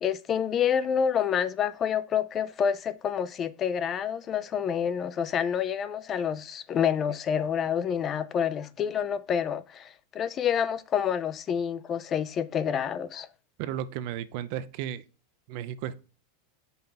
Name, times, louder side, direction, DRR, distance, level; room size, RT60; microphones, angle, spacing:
voice 1, 0.0-13.3, left 8 dB, 25° left, 0.4 m, -28 dB
voice 2, 13.6-15.0 15.5-16.0, right 10 dB, 55° right, 0.6 m, -34 dB
5.4 x 4.3 x 4.0 m
supercardioid pair, 145°, 0 cm